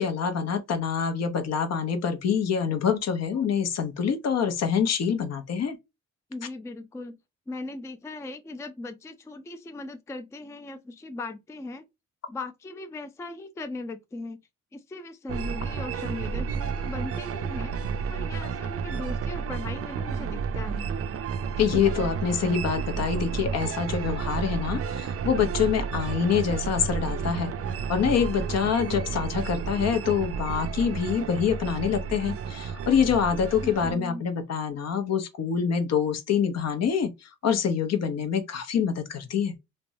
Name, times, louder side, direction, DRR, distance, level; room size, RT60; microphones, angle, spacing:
voice 1, 0.0-5.8 21.6-27.5 27.9-39.5, left 7 dB, 55° left, 0.8 m, -26 dB
voice 2, 6.3-7.2 7.5-11.9 12.3-14.4 14.7-17.7 18.1-20.9 33.6-34.3, left 2 dB, 10° left, 0.3 m, -38 dB
sound 1, 15.3-33.9, right 6 dB, 50° right, 0.5 m, -31 dB
3.4 x 2.1 x 2.5 m
cardioid pair, 90°, 30 cm